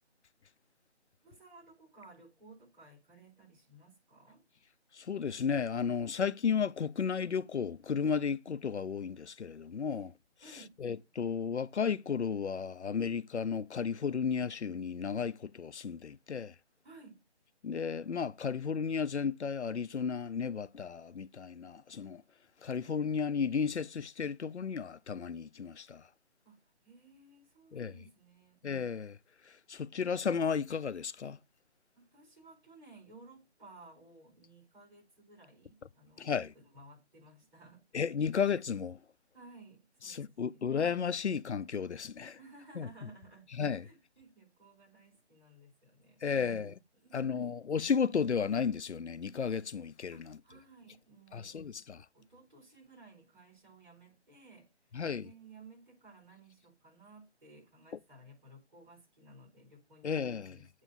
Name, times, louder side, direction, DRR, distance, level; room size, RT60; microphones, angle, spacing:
voice 1, 1.2-4.4 9.9-10.1 10.4-10.8 16.8-17.2 26.4-28.6 32.0-38.3 39.3-40.7 42.4-43.5 43.8-47.5 50.1-51.6 52.1-60.8, right 2 dB, 45° right, 4.7 m, -57 dB
voice 2, 4.9-10.1 10.8-16.5 17.6-22.2 22.6-26.0 27.7-27.9 28.6-29.2 29.7-31.4 36.2-36.5 37.9-39.0 40.1-42.4 42.8-42.9 43.6-43.8 46.2-46.7 47.1-50.4 51.3-52.0 54.9-55.3 60.0-60.6, left 6 dB, 75° left, 0.6 m, -33 dB
8.2 x 3.2 x 5.7 m
figure-of-eight pair, 160°, 34 cm